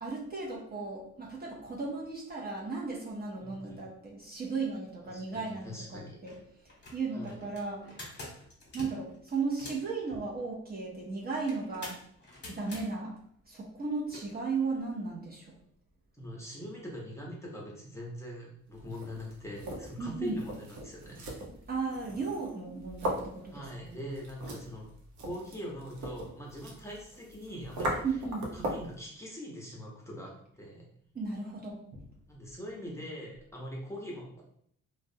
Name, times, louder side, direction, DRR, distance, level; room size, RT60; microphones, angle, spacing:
voice 1, 0.0-6.3 6.6-8.0 8.7-12.0 12.5-13.2 13.5-15.5 20.0-20.4 21.7-24.0 28.0-28.5 31.1-32.0, right 4 dB, 30° right, -3 dB, 0.5 m, -35 dB
voice 2, 3.4-3.8 5.1-6.2 7.1-7.4 16.2-21.3 23.5-24.9 25.2-28.0 28.5-30.8 32.3-34.4, equal, 10° left, -3 dB, 0.7 m, -42 dB
sound 1, 5.7-5.8 6.2-6.4 6.7-9.9 11.5-12.8 14.1-14.2, left 2 dB, 35° left, 0.9 m, -46 dB
sound 2, 18.8-29.0, right 1 dB, 75° right, 0.7 m, -39 dB
2.3 x 2.0 x 2.6 m, 0.65 s
cardioid pair, 90°, 30 cm